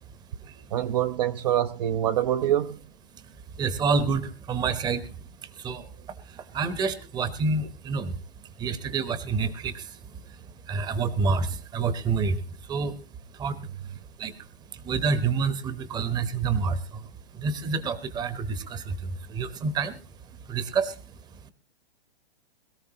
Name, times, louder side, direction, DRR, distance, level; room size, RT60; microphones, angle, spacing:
voice 1, 0.7-2.8, right 11 dB, 40° right, 0.7 m, -25 dB
voice 2, 3.2-5.9 6.2-13.0 13.3-20.0 20.4-21.5, right 4 dB, 15° right, 0.9 m, -29 dB
22.0 x 13.5 x 2.9 m
hypercardioid pair, 140°, 30 cm